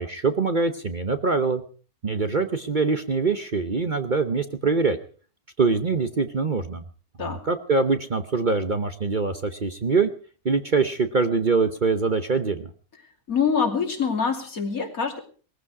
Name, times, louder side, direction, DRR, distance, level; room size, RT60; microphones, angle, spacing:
voice 1, 0.0-1.6 2.0-5.0 5.6-6.8 7.2-10.1 10.4-12.7, right 4 dB, 35° right, 9 dB, 1.0 m, -24 dB
voice 2, 13.3-15.2, left 6 dB, 65° left, 4 dB, 3.1 m, -25 dB
20.0 x 14.5 x 4.8 m, 0.40 s
omnidirectional pair, 1.6 m